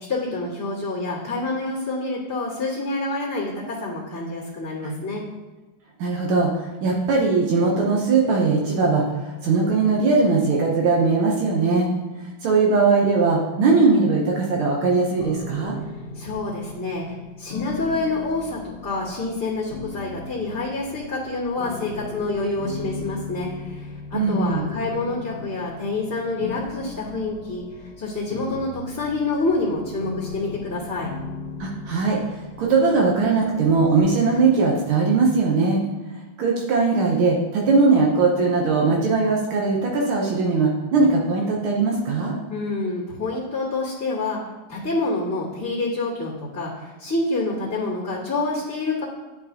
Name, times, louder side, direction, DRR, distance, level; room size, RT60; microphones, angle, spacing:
voice 1, 0.1-3.5 3.8-5.2 16.1-27.6 28.0-31.1 42.5-44.4 44.7-49.0, left 2 dB, 10° left, -13 dB, 1.6 m, -27 dB
voice 2, 6.0-9.0 9.4-11.9 12.4-15.8 24.1-24.7 31.6-35.8 36.4-42.4, right 4 dB, 85° right, -1 dB, 1.7 m, -20 dB
sound 1, 15.2-34.2, left 4 dB, 70° left, 1.4 m, -37 dB
10.5 x 4.5 x 2.8 m, 1.2 s
omnidirectional pair, 2.2 m